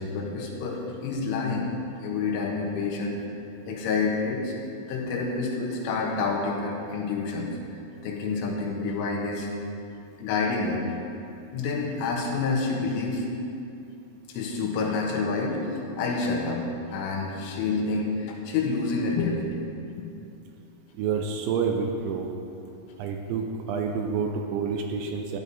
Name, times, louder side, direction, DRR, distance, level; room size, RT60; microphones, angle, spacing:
voice 1, 0.0-1.7 2.0-3.2 3.7-4.6 4.9-9.5 10.2-10.8 11.5-13.3 14.3-16.6 16.9-19.6 20.0-20.1, left 4 dB, 85° left, -2 dB, 3.9 m, -28 dB
voice 2, 20.9-22.3 23.0-25.4, right 5 dB, 85° right, 3 dB, 2.8 m, -28 dB
14.0 x 10.0 x 4.1 m, 2.7 s
omnidirectional pair, 5.6 m